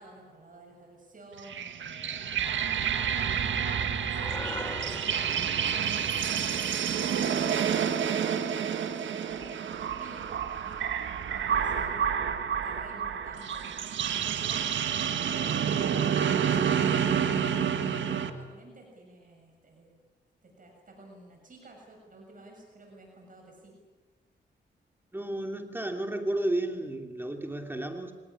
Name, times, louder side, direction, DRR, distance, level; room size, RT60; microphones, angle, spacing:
voice 1, 0.0-2.6 2.9-10.8 11.2-12.2 12.6-13.7 14.1-20.0 20.4-23.7, right 2 dB, 45° right, 1 dB, 7.0 m, -51 dB
sound 1, 1.4-18.3, right 8 dB, 90° right, 1.8 m, -29 dB
sound 2, 4.2-8.6, left 1 dB, 15° left, 3.4 m, -43 dB
voice 2, 25.1-28.1, right 1 dB, 10° right, 4 dB, 2.9 m, -32 dB
25.0 x 19.0 x 10.0 m, 1.3 s
cardioid pair, 90°, 19 cm